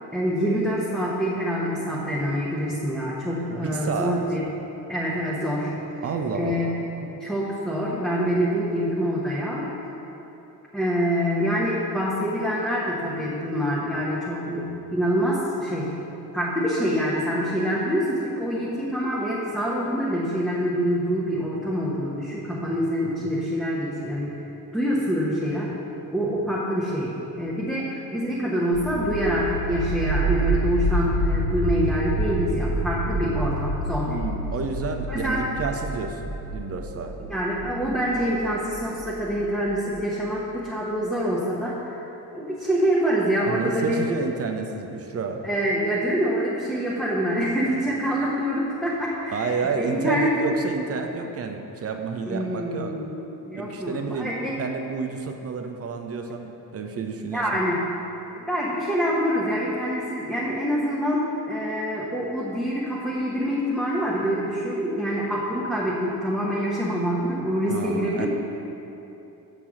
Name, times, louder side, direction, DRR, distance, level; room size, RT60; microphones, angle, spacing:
voice 1, 0.1-4.4 4.9-5.7 6.3-6.7 7.0-9.7 10.7-15.9 16.3-24.3 24.7-25.7 26.1-34.2 35.1-35.5 37.2-42.0 42.3-44.1 45.4-50.3 52.2-54.5 57.3-58.0 58.3-68.3, equal, ahead, -7 dB, 1.0 m, -26 dB
voice 2, 3.5-4.2 6.0-6.8 34.0-37.1 43.4-45.4 49.3-53.0 53.5-54.3 54.6-57.6 67.7-68.3, right 5 dB, 30° right, 4 dB, 0.6 m, -30 dB
sound 1, 28.7-39.4, right 1 dB, 80° left, 1.3 m, -28 dB
7.0 x 3.9 x 6.1 m, 3.0 s
figure-of-eight pair, 45°, 50 cm